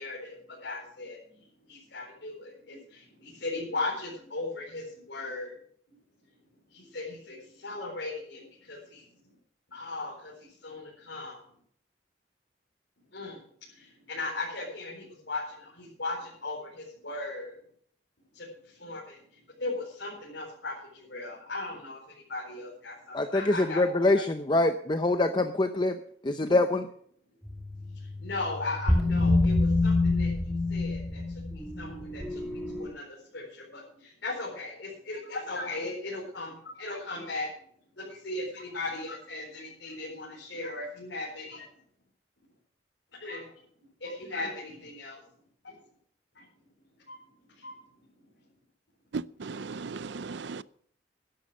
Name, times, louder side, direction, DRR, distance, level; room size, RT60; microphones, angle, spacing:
voice 1, 0.0-5.6 5.9-6.0 6.3-6.4 6.7-9.4 9.7-11.5 13.1-17.6 18.3-24.3 27.9-37.5 38.0-41.7 43.2-43.5 44.0-45.2 45.6-45.8 46.3-46.4 47.1-47.8 48.1-48.3, left 2 dB, 80° left, 4.6 m, -38 dB
voice 2, 23.8-24.2 24.5-25.9 26.3-26.9, left 2 dB, 25° left, 0.6 m, -24 dB
sound 1, 27.4-32.9, left 2 dB, ahead, 2.3 m, -27 dB
voice 3, 49.1-50.6, right 4 dB, 75° right, 0.5 m, -36 dB
12.0 x 11.5 x 6.3 m
head